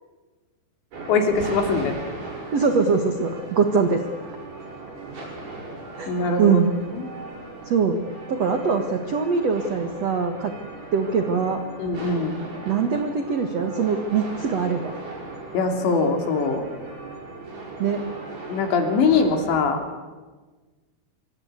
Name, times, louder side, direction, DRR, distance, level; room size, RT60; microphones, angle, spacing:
sound 1, 0.9-19.7, right 2 dB, 50° right, 8.8 m, -38 dB
voice 1, 1.1-2.0 6.1-6.6 6.9-7.0 11.8-12.4 15.5-16.6 18.5-19.8, left 4 dB, 65° left, 5 dB, 5.1 m, -22 dB
voice 2, 2.5-4.0 6.0-6.1 6.4-6.7 7.6-8.0 8.3-10.5 10.9-11.6 12.7-14.9 17.8-18.0, right 5 dB, 85° right, 6 dB, 1.4 m, -22 dB
25.5 x 25.0 x 8.2 m, 1.3 s
omnidirectional pair, 5.6 m